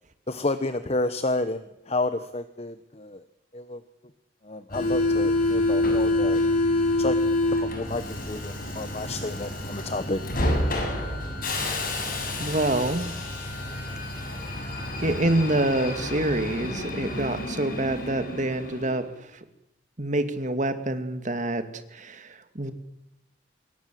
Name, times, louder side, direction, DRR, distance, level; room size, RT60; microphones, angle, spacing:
voice 1, 0.3-3.3 3.5-3.8 4.4-6.4 7.0-10.2, left 2 dB, 35° left, 11 dB, 1.1 m, -30 dB
Subway metro underground, 4.7-19.1, left 2 dB, 50° left, 6.8 m, -27 dB
voice 2, 12.4-13.1 15.0-19.0 20.0-21.6 21.9-22.7, right 1 dB, 40° right, 9 dB, 2.4 m, -26 dB
26.0 x 21.5 x 7.8 m, 0.86 s
head